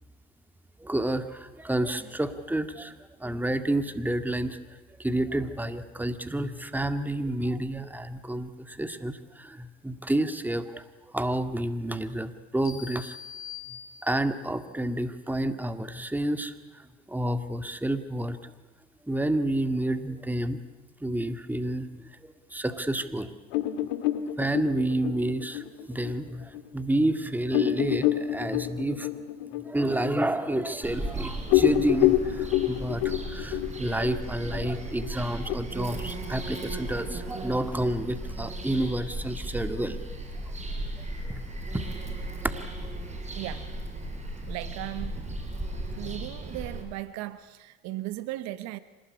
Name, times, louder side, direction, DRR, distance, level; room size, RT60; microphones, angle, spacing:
voice 1, 0.8-2.9 3.2-4.6 5.0-10.8 11.1-13.2 14.0-16.5 17.1-18.5 19.1-20.6 21.0-23.3 24.4-29.1 29.7-40.2 41.2-41.4 41.7-41.8, right 1 dB, 5° right, 9 dB, 2.0 m, -29 dB
sound 1, 12.6-14.5, left 8 dB, 45° left, 5.7 m, -43 dB
sound 2, 23.5-26.6 27.0-27.1 27.5-31.1 31.4-35.5, left 14 dB, 70° left, 1.9 m, -27 dB
Bird vocalization bird call bird song, 30.8-46.8, right 2 dB, 25° right, 6.4 m, -36 dB
voice 2, 43.3-43.7 44.5-45.1 46.0-48.8, right 16 dB, 65° right, 14 dB, 1.4 m, -36 dB
26.0 x 19.5 x 9.7 m, 1.2 s
hypercardioid pair, 80°, 29 cm